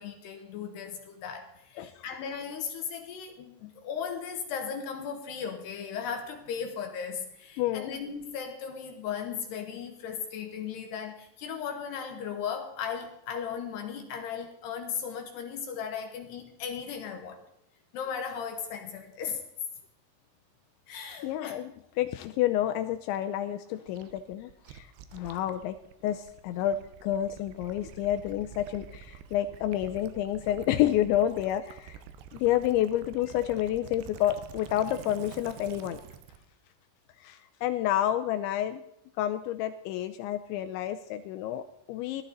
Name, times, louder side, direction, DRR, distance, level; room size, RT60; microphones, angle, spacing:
voice 1, 0.0-17.4 17.9-19.4 20.9-21.6, left 7 dB, 70° left, 2.8 m, -37 dB
voice 2, 7.6-7.9 21.2-21.7 22.0-25.8 26.0-32.0 32.3-36.0 37.2-38.8 39.2-42.2, left 12 dB, 85° left, 2.6 m, -29 dB
Gurgling / Liquid, 23.9-36.5, right 9 dB, 80° right, 2.6 m, -48 dB
18.5 x 12.5 x 4.0 m
omnidirectional pair, 5.9 m